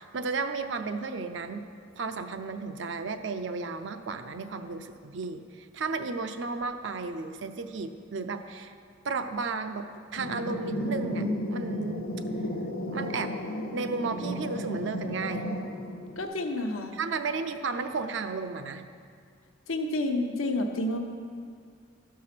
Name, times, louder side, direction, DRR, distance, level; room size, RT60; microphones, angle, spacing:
voice 1, 0.0-1.6 2.0-8.7 9.0-12.1 12.9-13.3 13.7-15.5 16.9-18.8, right 4 dB, 60° right, 8 dB, 0.5 m, -33 dB
sound 1, 10.1-16.2, equal, 45° left, 0.8 m, -33 dB
voice 2, 16.2-16.9 19.7-21.0, left 2 dB, 85° left, 4 dB, 0.8 m, -29 dB
12.5 x 4.7 x 5.8 m, 2.2 s
head